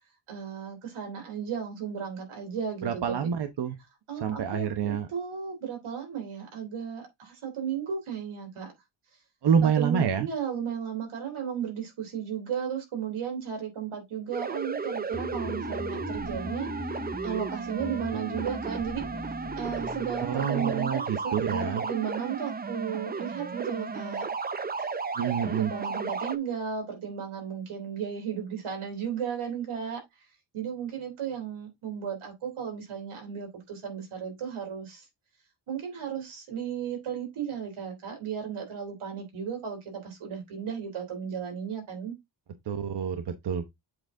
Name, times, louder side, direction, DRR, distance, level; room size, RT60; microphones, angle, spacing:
voice 1, 0.3-3.2 4.1-8.7 9.6-16.7 17.2-19.1 19.5-24.3 25.5-30.0 30.5-35.0 35.7-42.1, right 7 dB, 85° right, 3.4 m, -34 dB
voice 2, 2.8-3.8 4.2-5.1 9.4-10.3 20.3-21.8 25.2-25.7 42.7-43.6, right 7 dB, 55° right, 1.0 m, -27 dB
sound 1, 14.3-26.4, right 4 dB, 20° right, 0.5 m, -34 dB
sound 2, 15.1-20.5, left 3 dB, 15° left, 1.0 m, -40 dB
7.9 x 4.0 x 3.7 m
wide cardioid pair, 125°, 48 cm